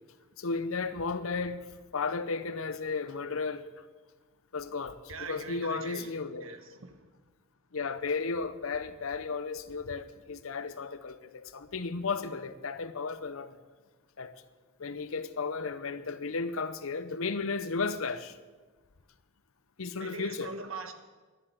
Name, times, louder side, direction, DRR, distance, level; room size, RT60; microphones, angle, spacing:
voice 1, 0.4-1.6 1.9-3.8 4.5-6.5 7.7-13.6 14.2-14.3 14.8-18.4 19.8-20.5, left 4 dB, 75° left, 0.7 m, -34 dB
voice 2, 5.1-6.1 6.4-7.0 20.0-20.9, right 4 dB, 70° right, 1.2 m, -41 dB
11.0 x 7.6 x 9.3 m
head